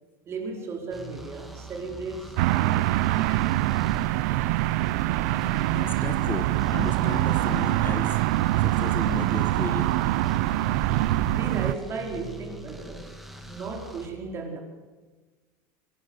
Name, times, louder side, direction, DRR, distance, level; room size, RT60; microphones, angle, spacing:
voice 1, 0.3-3.5 11.3-13.1 13.5-14.6, right 4 dB, 30° right, 4.5 m, -36 dB
sound 1, 0.9-14.1, right 1 dB, ahead, 2.5 m, -43 dB
sound 2, 2.4-11.8, right 16 dB, 70° right, 0.8 m, -24 dB
voice 2, 5.7-8.2 8.6-9.9, left 5 dB, 20° left, 1.4 m, -34 dB
24.5 x 18.0 x 8.1 m
supercardioid pair, 140°, 9 cm